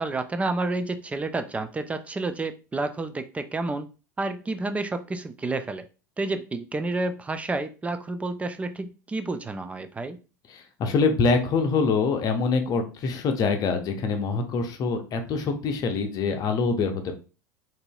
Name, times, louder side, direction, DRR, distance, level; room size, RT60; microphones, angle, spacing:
voice 1, 0.0-3.9 4.2-5.9 6.2-10.2, right 2 dB, 15° right, 9 dB, 0.3 m, -30 dB
voice 2, 10.5-17.1, left 4 dB, 40° left, 5 dB, 0.7 m, -25 dB
3.8 x 2.5 x 2.3 m, 0.33 s
figure-of-eight pair, 80°, 10 cm